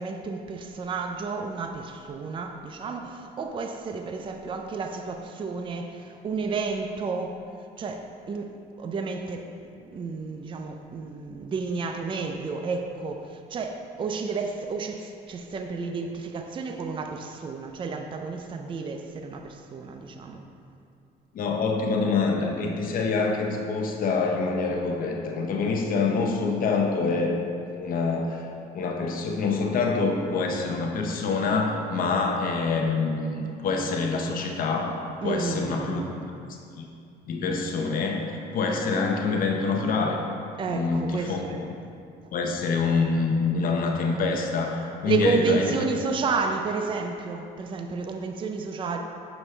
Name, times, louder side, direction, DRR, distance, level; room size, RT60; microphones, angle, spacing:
voice 1, 0.0-7.4 7.8-8.5 8.8-9.5 9.8-20.4 35.2-36.1 40.6-41.6 45.0-49.0, right 4 dB, 30° right, 4 dB, 0.5 m, -31 dB
voice 2, 21.3-28.4 28.7-34.9 35.2-36.0 36.5-36.9 37.3-40.2 40.7-41.4 42.3-45.7, left 4 dB, 55° left, 1 dB, 0.7 m, -26 dB
7.1 x 5.9 x 3.3 m, 2.5 s
cardioid pair, 110°, 17 cm